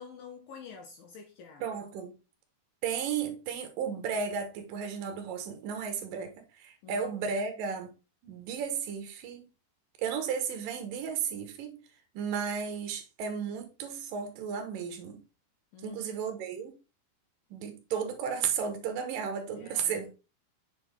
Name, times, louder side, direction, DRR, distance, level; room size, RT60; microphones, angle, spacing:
voice 1, 0.0-1.6 6.8-7.1 15.7-16.1 19.6-20.1, left 6 dB, 80° left, 2.2 m, -48 dB
voice 2, 1.6-2.1 2.8-7.9 8.2-9.5 10.0-11.8 12.1-15.2 15.8-16.7 17.5-20.1, right 7 dB, 70° right, 2.5 m, -34 dB
7.2 x 4.2 x 3.4 m
omnidirectional pair, 4.8 m